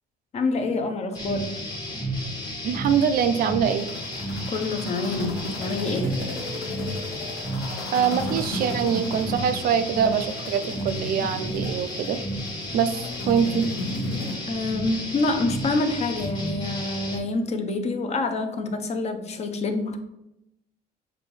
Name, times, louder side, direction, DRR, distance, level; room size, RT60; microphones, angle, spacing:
voice 1, 0.3-1.5 4.5-6.2 14.5-20.0, left 3 dB, 40° left, 6 dB, 0.6 m, -27 dB
sound 1, 1.1-17.2, equal, 25° left, 1.1 m, -32 dB
voice 2, 2.6-3.9 7.9-12.2 12.7-13.7, right 7 dB, 60° right, 9 dB, 0.4 m, -24 dB
sound 2, 3.7-14.4, left 2 dB, 80° left, 1.1 m, -36 dB
6.2 x 2.6 x 3.2 m, 0.87 s
cardioid pair, 110°, 17 cm